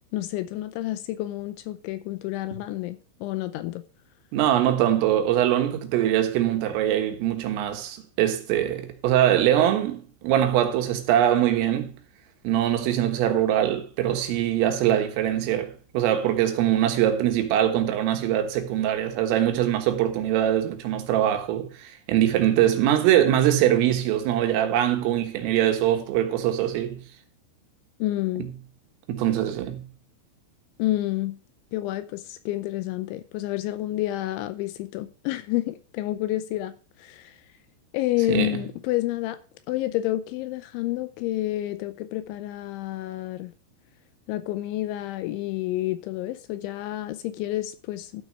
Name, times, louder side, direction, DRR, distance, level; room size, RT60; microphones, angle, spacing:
voice 1, 0.1-3.8 28.0-28.5 30.8-31.4 31.7-36.7 37.0-37.4 37.9-39.4 39.7-43.5 44.3-48.2, left 15 dB, 80° left, 2.8 m, -29 dB
voice 2, 4.3-12.0 12.5-27.0 28.4-28.5 29.1-29.9 38.3-38.5, right 11 dB, 85° right, 4.0 m, -23 dB
13.0 x 6.0 x 5.4 m
omnidirectional pair, 5.8 m